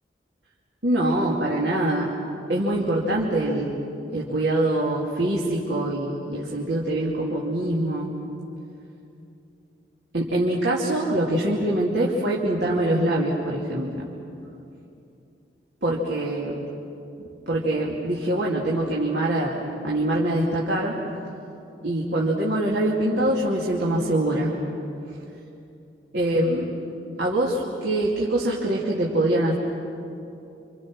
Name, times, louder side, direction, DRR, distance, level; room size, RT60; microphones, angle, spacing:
voice 1, 0.8-2.1 2.5-3.7 4.1-8.1 10.1-14.1 15.8-16.6 17.2-21.0 21.8-24.5 26.1-26.7 27.2-29.5, right 1 dB, 75° right, -4 dB, 2.8 m, -24 dB
29.5 x 27.0 x 6.2 m, 2.7 s
head